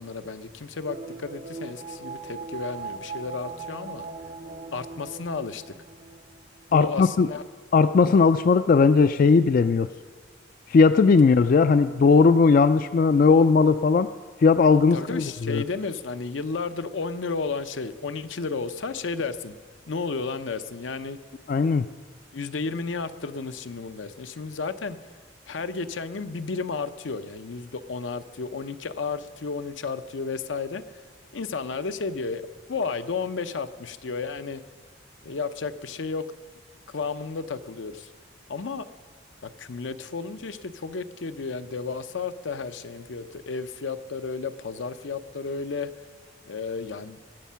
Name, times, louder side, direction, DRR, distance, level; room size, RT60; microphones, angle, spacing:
voice 1, 0.0-4.1 4.7-5.6 6.7-7.4 14.9-19.6 19.9-21.2 22.3-25.0 25.5-30.8 31.3-32.4 32.7-34.6 35.2-36.2 36.9-38.1 38.5-38.8 39.4-45.9 46.5-47.2, left 4 dB, 80° left, 10 dB, 0.7 m, -32 dB
sound 1, 0.9-6.8 7.1-7.2, right 4 dB, 35° right, 0.6 m, -39 dB
voice 2, 6.7-7.3 7.7-9.9 10.7-14.1 14.4-15.6 21.5-21.9, left 4 dB, 45° left, 12 dB, 0.3 m, -18 dB
21.5 x 8.3 x 5.7 m, 1.5 s
head